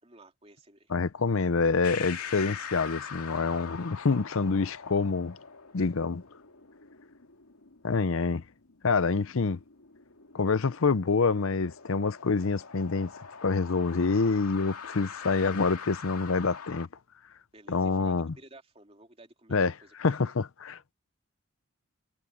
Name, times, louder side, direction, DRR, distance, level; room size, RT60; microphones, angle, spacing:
voice 1, 0.0-0.9 17.5-20.3, right 2 dB, 25° right, 3.1 m, -54 dB
voice 2, 0.9-5.3 5.7-6.2 7.8-8.4 8.8-9.6 10.3-13.1 13.4-16.9 17.7-18.3 19.5-19.7 20.0-20.9, left 4 dB, 65° left, 0.6 m, -26 dB
sound 1, 1.8-16.9, left 6 dB, 85° left, 2.4 m, -44 dB
head